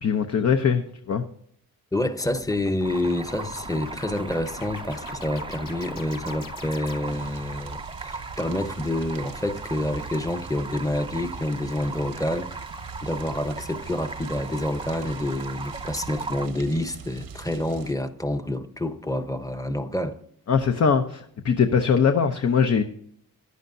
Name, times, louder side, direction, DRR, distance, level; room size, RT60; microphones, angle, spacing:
voice 1, 0.0-1.2 20.5-22.8, left 6 dB, 50° left, 0.8 m, -21 dB
voice 2, 1.9-12.5 13.0-20.2, left 1 dB, 10° left, 0.9 m, -28 dB
sound 1, 2.2-7.4, left 5 dB, 70° left, 1.3 m, -43 dB
Stream, 2.8-16.5, right 3 dB, 15° right, 0.5 m, -38 dB
sound 2, 7.0-17.9, right 6 dB, 90° right, 1.2 m, -42 dB
14.5 x 11.0 x 2.7 m
wide cardioid pair, 125°, 34 cm